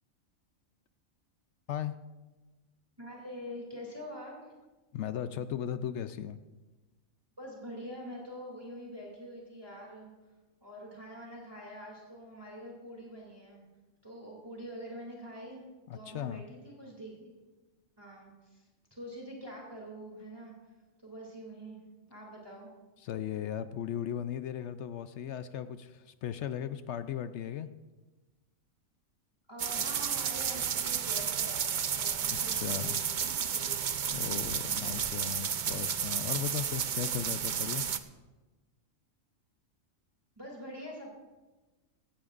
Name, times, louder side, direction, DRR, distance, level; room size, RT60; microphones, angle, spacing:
voice 1, 3.0-4.5 7.4-10.1 10.6-13.6 14.0-15.7 15.9-17.3 18.0-20.5 21.0-21.8 22.1-22.7 29.5-33.1 33.5-33.9 34.5-34.8 40.4-41.2, equal, 15° right, -3 dB, 2.7 m, -45 dB
voice 2, 4.9-6.4 15.9-16.4 23.0-27.7 32.5-33.0 34.1-37.9, left 10 dB, 65° left, 12 dB, 0.8 m, -37 dB
sound 1, 29.6-38.0, right 8 dB, 55° right, 0.5 m, -32 dB
16.0 x 16.0 x 2.5 m, 1.2 s
omnidirectional pair, 1.4 m